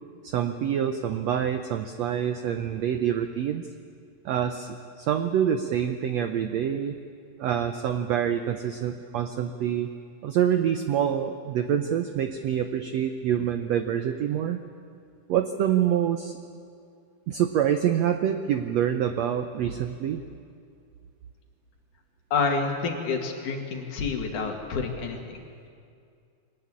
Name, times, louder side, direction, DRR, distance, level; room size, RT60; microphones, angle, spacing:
voice 1, 0.2-3.7 4.2-7.0 7.4-9.9 10.2-14.6 15.3-16.4 17.3-20.2, right 9 dB, 85° right, 7 dB, 1.5 m, -26 dB
voice 2, 22.3-25.4, left 4 dB, 60° left, 2 dB, 3.5 m, -28 dB
23.0 x 19.0 x 9.7 m, 2.4 s
omnidirectional pair, 4.1 m